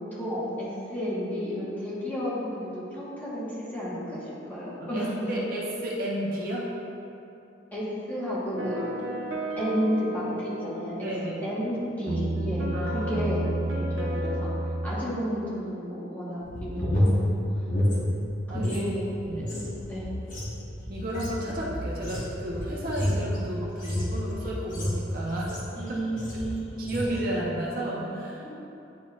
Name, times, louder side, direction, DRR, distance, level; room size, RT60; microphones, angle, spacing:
voice 1, 0.1-5.3 7.7-8.8 9.6-11.1 11.4-14.5 14.8-17.4 18.5-20.1 25.8-26.9 27.7-28.1 28.4-28.5, equal, 10° left, -9 dB, 1.3 m, -32 dB
voice 2, 4.8-6.7 11.0-11.4 12.7-13.1 14.8-15.0 18.5-18.8 19.3-19.4 20.9-25.6 26.3-26.4 26.8-28.5, right 1 dB, 50° right, -4 dB, 0.8 m, -32 dB
sound 1, 8.6-15.0, right 1 dB, 80° right, 0.6 m, -31 dB
sound 2, 16.4-18.8 19.1-25.8 26.2-26.5 26.8-27.2, left 1 dB, 45° left, 1.2 m, -29 dB
9.4 x 4.1 x 2.4 m, 2.7 s
head